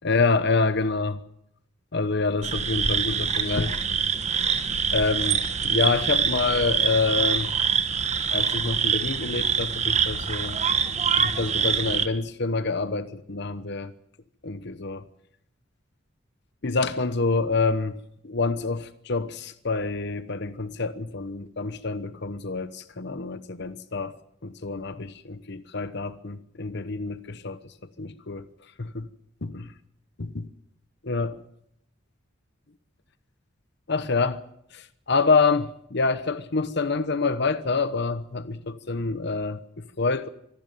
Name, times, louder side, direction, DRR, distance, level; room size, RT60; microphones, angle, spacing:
voice 1, 0.0-1.2 1.9-3.8 4.9-7.5 8.3-10.6 11.2-13.9 14.4-15.0 16.6-18.0 18.2-24.1 24.4-27.6 28.0-28.4 28.8-29.1 29.4-29.7 30.2-30.5 31.0-31.4 33.9-34.4 34.7-40.3, left 4 dB, 60° left, 12 dB, 1.0 m, -27 dB
sound 1, 2.4-12.1, right 6 dB, 35° right, 1.4 m, -25 dB
25.0 x 12.0 x 9.2 m, 0.76 s
head